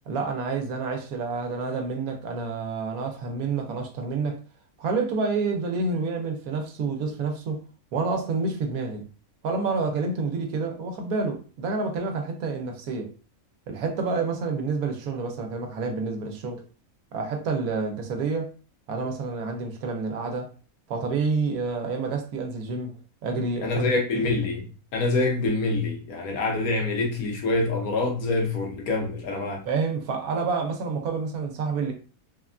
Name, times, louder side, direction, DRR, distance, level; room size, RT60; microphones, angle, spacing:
voice 1, 0.1-4.4 4.8-7.6 7.9-9.1 9.4-13.1 13.7-16.6 17.1-18.5 18.9-20.5 20.9-23.0 23.2-23.9 29.6-31.9, right 4 dB, 85° right, 1.1 m, -28 dB
voice 2, 23.6-24.6 24.9-29.6, left 2 dB, 80° left, 1.3 m, -25 dB
3.3 x 2.2 x 2.4 m
omnidirectional pair, 1.5 m